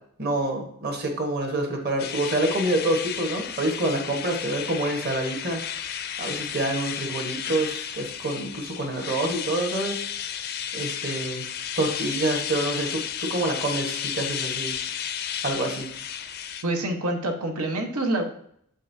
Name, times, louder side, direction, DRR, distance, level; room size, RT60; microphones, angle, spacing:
voice 1, 0.2-5.9 6.2-10.0 10.7-11.4 11.7-13.0 13.3-14.7 15.4-15.9, right 1 dB, 45° right, 2 dB, 1.3 m, -27 dB
sound 1, 2.0-16.6, left 9 dB, 45° left, 0.4 m, -33 dB
voice 2, 16.6-18.2, right 1 dB, 90° right, 4 dB, 1.1 m, -26 dB
7.7 x 5.3 x 2.7 m, 0.68 s
head